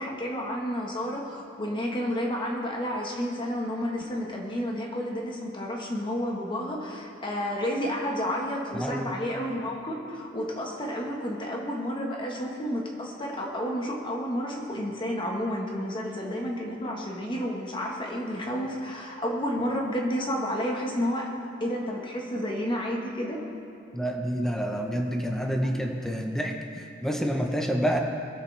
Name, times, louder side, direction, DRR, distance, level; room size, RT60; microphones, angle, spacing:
voice 1, 0.0-21.3 21.6-23.4, equal, 25° left, -1 dB, 1.5 m, -31 dB
voice 2, 8.7-9.2 23.9-28.0, equal, ahead, 2 dB, 1.0 m, -28 dB
20.5 x 7.9 x 3.4 m, 2.5 s
head